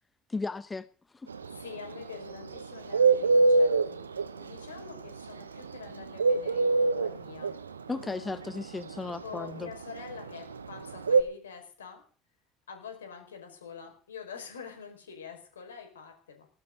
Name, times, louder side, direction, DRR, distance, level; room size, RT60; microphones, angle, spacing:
voice 1, 0.3-0.9 1.1-1.3 7.9-9.7, left 3 dB, 20° left, 14 dB, 1.0 m, -35 dB
Bird, 1.3-11.2, right 3 dB, 85° right, 1.0 m, -24 dB
voice 2, 1.5-7.5 9.1-12.0 12.7-16.5, left 6 dB, 80° left, 4 dB, 5.3 m, -46 dB
19.0 x 18.5 x 4.0 m, 0.42 s
figure-of-eight pair, 60°, 0 cm